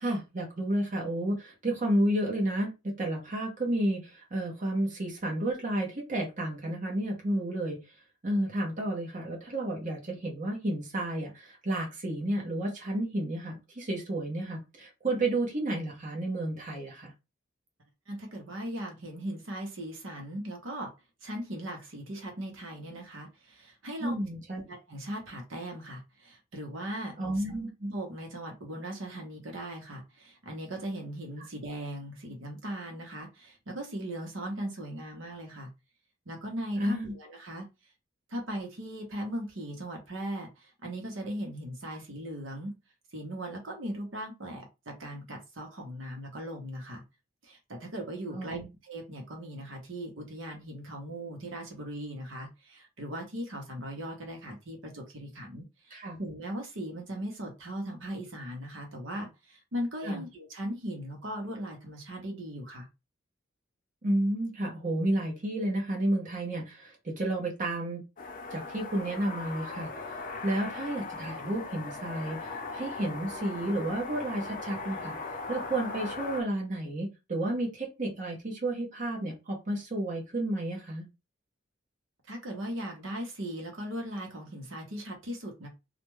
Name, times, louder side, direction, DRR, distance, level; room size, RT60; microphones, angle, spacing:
voice 1, 0.0-7.8 8.2-17.1 24.0-24.6 27.2-27.7 36.8-37.1 48.3-48.6 55.9-56.2 60.0-60.2 64.0-68.0 68.5-75.2 75.5-81.0, right 1 dB, 40° right, -1 dB, 0.8 m, -31 dB
voice 2, 18.1-20.9 21.2-24.2 24.7-27.2 27.8-35.7 36.3-37.7 38.3-42.8 43.1-47.0 47.4-62.9 82.3-85.7, right 1 dB, 70° right, 1 dB, 0.9 m, -38 dB
sound 1, 68.2-76.4, left 3 dB, 45° left, 0.6 m, -39 dB
2.4 x 2.2 x 3.0 m, 0.26 s
head